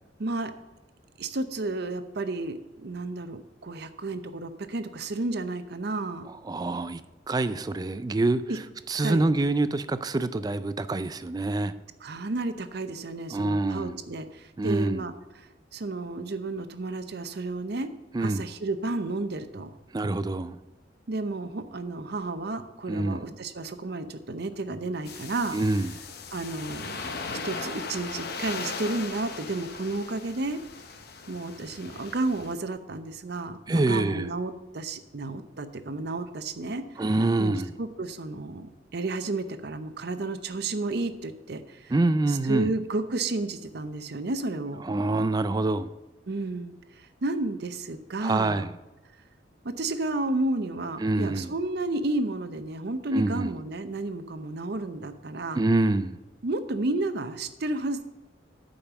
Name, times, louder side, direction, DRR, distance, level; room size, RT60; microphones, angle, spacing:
voice 1, 0.2-0.5 1.2-6.3 8.5-8.6 9.0-9.2 12.0-17.9 18.2-19.7 21.1-25.6 26.3-27.0 27.3-30.6 31.3-36.8 37.4-41.9 42.3-44.8 46.3-48.7 49.6-55.6 56.4-58.0, right 2 dB, 55° right, 10 dB, 0.7 m, -32 dB
voice 2, 6.5-7.0 7.3-8.4 8.9-11.7 13.3-14.0 14.6-15.0 18.1-18.4 19.9-20.6 22.9-23.2 25.5-25.9 33.7-34.3 37.0-37.7 41.9-42.7 44.8-45.9 48.2-48.7 51.0-51.5 53.1-53.5 55.6-56.2, right 2 dB, 20° right, 13 dB, 0.3 m, -26 dB
sound 1, 25.0-32.5, left 4 dB, 55° left, 0.8 m, -38 dB
8.8 x 5.3 x 7.0 m, 1.0 s
head